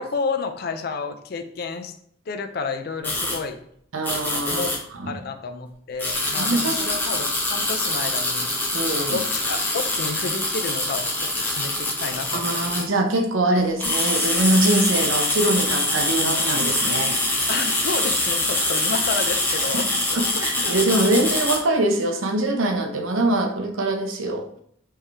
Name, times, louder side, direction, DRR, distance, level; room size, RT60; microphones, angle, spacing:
voice 1, 0.0-1.9 2.3-3.6 4.5-4.7 5.1-8.5 9.1-11.3 11.6-12.9 17.5-20.7, left 4 dB, 45° left, 8 dB, 0.4 m, -31 dB
sound 1, 3.0-3.4 4.0-4.8 6.0-12.9 13.6-21.6, left 2 dB, 10° left, 0.7 m, -24 dB
voice 2, 3.9-4.6 5.0-5.2 6.4-6.9 8.7-9.2 12.3-17.2 19.7-19.8 20.1-24.5, right 2 dB, 75° right, 5 dB, 0.7 m, -23 dB
4.4 x 3.2 x 3.4 m, 0.66 s
head